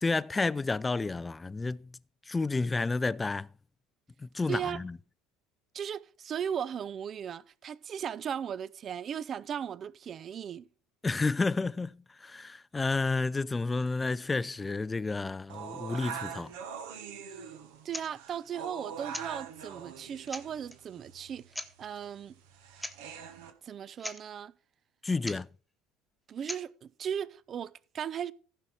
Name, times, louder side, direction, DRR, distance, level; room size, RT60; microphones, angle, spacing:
voice 1, 0.0-1.9 2.3-3.5 4.2-5.0 11.0-16.5 25.0-25.5, left 3 dB, 20° left, 0.4 m, -31 dB
voice 2, 4.5-4.8 5.7-10.7 17.8-21.5 21.8-22.4 23.6-24.5 26.3-28.3, right 8 dB, 40° right, 0.5 m, -37 dB
sound 1, 15.5-23.5, right 7 dB, 70° right, 1.4 m, -43 dB
sound 2, 17.9-18.1 19.1-19.3 19.9-20.0 20.3-20.8 21.5-21.7 22.8-23.0 23.2-23.3 23.7-23.8 24.0-24.2 25.2-25.4 26.5-26.7, left 1 dB, 5° left, 1.2 m, -40 dB
15.0 x 5.6 x 4.9 m
hypercardioid pair, 70°, 0 cm